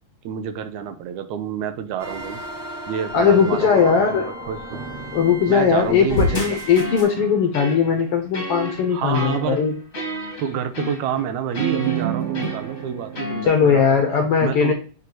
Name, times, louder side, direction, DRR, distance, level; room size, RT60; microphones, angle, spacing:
voice 1, 0.2-2.4 2.9-4.9 5.5-6.6 8.9-9.6 10.4-13.8 14.4-14.7, right 8 dB, 85° right, 9 dB, 2.1 m, -28 dB
sound 1, 2.0-7.0, right 1 dB, ahead, 1.1 m, -35 dB
voice 2, 3.1-4.3 5.1-9.7 13.4-14.7, left 6 dB, 70° left, 5 dB, 1.4 m, -19 dB
sound 2, 4.7-7.3 11.6-13.3, right 10 dB, 55° right, 1.9 m, -31 dB
sound 3, 6.1-13.5, left 1 dB, 30° left, 1.7 m, -30 dB
6.8 x 5.1 x 3.0 m, 0.40 s
omnidirectional pair, 3.5 m